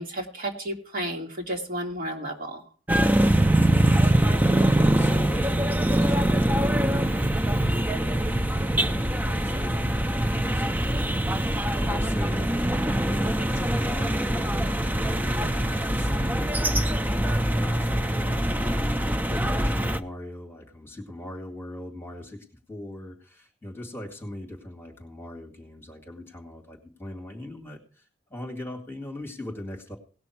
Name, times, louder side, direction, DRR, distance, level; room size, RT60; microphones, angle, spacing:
voice 1, 0.0-2.6, right 1 dB, 50° right, 0 dB, 2.2 m, -32 dB
sound 1, 2.9-20.0, right 1 dB, 10° right, 0.4 m, -23 dB
voice 2, 3.8-10.0 10.4-12.5 12.9-28.0 28.3-30.0, left 1 dB, 10° left, 0 dB, 2.1 m, -40 dB
18.0 x 6.2 x 4.6 m, 0.40 s
head